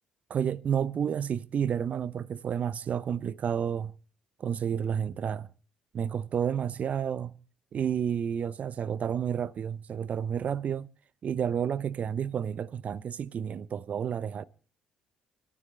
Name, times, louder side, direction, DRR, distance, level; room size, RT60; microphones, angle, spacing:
voice 1, 0.3-3.9 4.4-5.5 5.9-7.3 7.7-10.9 11.2-14.4, right 8 dB, 50° right, 0.8 m, -30 dB
25.0 x 13.0 x 3.4 m
hypercardioid pair, 50°, 3 cm